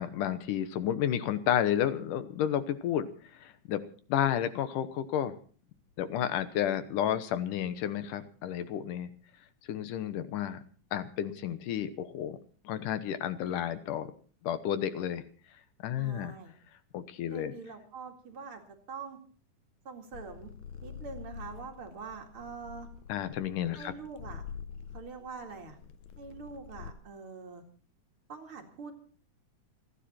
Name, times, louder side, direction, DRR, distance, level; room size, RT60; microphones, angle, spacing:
voice 1, 0.0-3.8 4.1-5.4 6.0-9.1 9.7-10.6 10.9-12.4 12.6-14.1 14.4-15.2 15.8-16.3 16.9-17.5 23.1-23.9, left 10 dB, 90° left, 12 dB, 2.7 m, -31 dB
voice 2, 16.0-16.5 17.3-19.2 19.8-20.5 20.8-22.9 23.7-24.4 24.9-25.8 26.2-27.6 28.3-28.9, right 5 dB, 45° right, 3 dB, 2.9 m, -44 dB
sound 1, 20.1-26.9, left 7 dB, 70° left, 2.1 m, -46 dB
29.0 x 10.0 x 4.4 m, 0.41 s
omnidirectional pair, 3.6 m